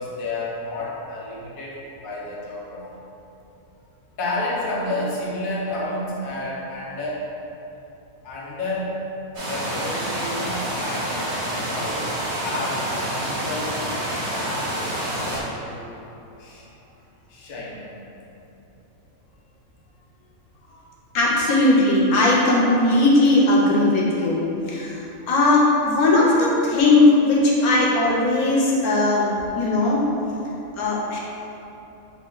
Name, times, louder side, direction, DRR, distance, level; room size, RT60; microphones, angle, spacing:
voice 1, 0.0-3.1 4.2-7.3 8.2-9.0 9.3-12.1 12.4-14.0 14.3-16.0 16.4-16.7 17.3-17.9 20.6-20.8 24.8-24.9, left 2 dB, 45° left, -5 dB, 0.8 m, -31 dB
sound 1, 9.3-15.4, right 1 dB, 50° right, 1.2 m, -28 dB
voice 2, 21.1-24.4 24.7-30.0 30.8-31.2, left 2 dB, 85° left, -4 dB, 1.2 m, -18 dB
4.8 x 2.4 x 3.9 m, 2.9 s
omnidirectional pair, 1.5 m